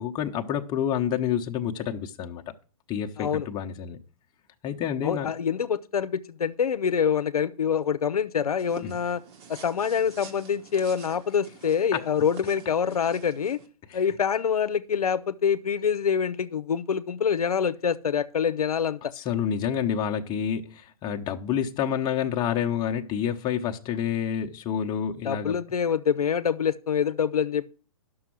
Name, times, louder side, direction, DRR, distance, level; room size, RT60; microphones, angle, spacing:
voice 1, 0.0-2.4 2.9-4.0 4.6-5.3 8.8-9.0 11.9-12.0 13.9-14.0 19.2-25.5, left 9 dB, 25° left, 0.9 m, -28 dB
voice 2, 5.0-9.2 9.5-13.6 13.9-19.1 25.2-27.7, left 7 dB, 85° left, 0.7 m, -26 dB
sound 1, 8.6-13.7, right 6 dB, 45° right, 1.6 m, -47 dB
11.0 x 6.4 x 6.1 m
hypercardioid pair, 130°, 19 cm